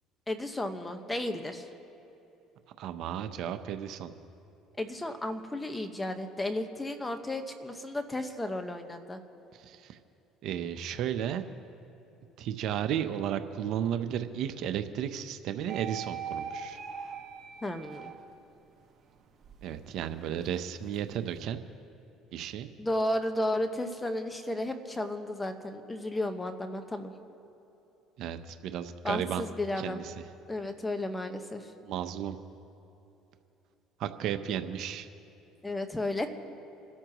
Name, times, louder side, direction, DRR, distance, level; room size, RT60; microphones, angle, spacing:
voice 1, 0.3-1.7 4.8-9.2 17.6-18.1 22.8-27.1 29.0-30.0 30.5-31.7 35.6-36.3, left 1 dB, 15° left, 7 dB, 1.3 m, -33 dB
voice 2, 2.8-4.1 9.5-10.0 10.4-11.4 12.4-16.8 19.6-21.6 22.3-22.7 28.2-29.4 29.8-30.2 31.8-32.4 34.0-35.1, right 9 dB, 65° right, 9 dB, 0.8 m, -34 dB
sound 1, 15.7-18.6 19.0-21.4, right 6 dB, 45° right, 1.7 m, -42 dB
28.0 x 13.0 x 3.1 m, 3.0 s
supercardioid pair, 90°, 0 cm